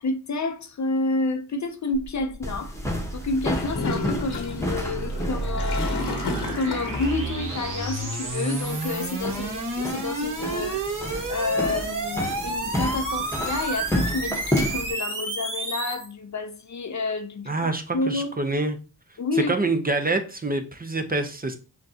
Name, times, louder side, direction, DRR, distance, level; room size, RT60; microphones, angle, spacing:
voice 1, 0.0-2.7 3.1-6.1 6.5-11.0 11.3-18.3 19.2-19.6, left 3 dB, 45° left, 0.5 m, -29 dB
sound 1, 1.9-16.1, right 2 dB, 50° right, 1.3 m, -31 dB
sound 2, 2.4-14.9, equal, 5° left, 1.0 m, -32 dB
Gurgling / Toilet flush, 3.5-7.3, left 3 dB, 75° left, 1.1 m, -32 dB
voice 2, 17.5-18.8 19.5-21.6, right 2 dB, 20° right, 0.6 m, -26 dB
6.1 x 2.2 x 2.7 m
cardioid pair, 70°, 41 cm